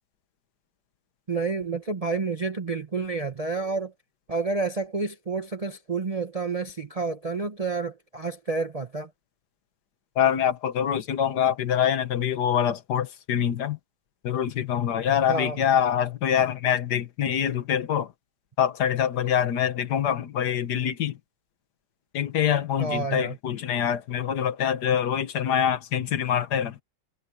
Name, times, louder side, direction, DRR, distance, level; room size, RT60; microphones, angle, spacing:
voice 1, 1.3-3.9 4.3-9.1 15.3-15.6 22.8-23.4, right 4 dB, 35° right, 0.6 m, -29 dB
voice 2, 10.2-13.8 14.2-18.1 18.6-21.2 22.1-26.8, left 9 dB, 75° left, 1.6 m, -25 dB
omnidirectional pair, 1.8 m